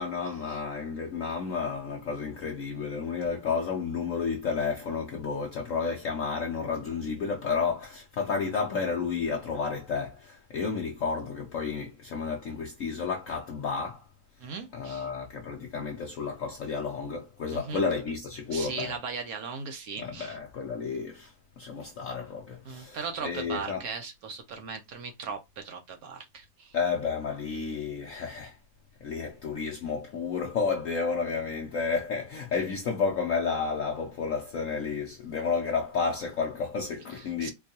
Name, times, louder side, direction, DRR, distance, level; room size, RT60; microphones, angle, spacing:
voice 1, 0.0-14.0 14.7-19.0 20.0-23.8 26.7-28.6 29.0-37.5, left 5 dB, 85° left, 0.7 m, -31 dB
voice 2, 14.4-15.1 17.5-17.9 18.5-20.4 22.7-26.8 37.1-37.5, right 5 dB, 70° right, 0.8 m, -38 dB
4.4 x 2.3 x 2.7 m
omnidirectional pair, 2.2 m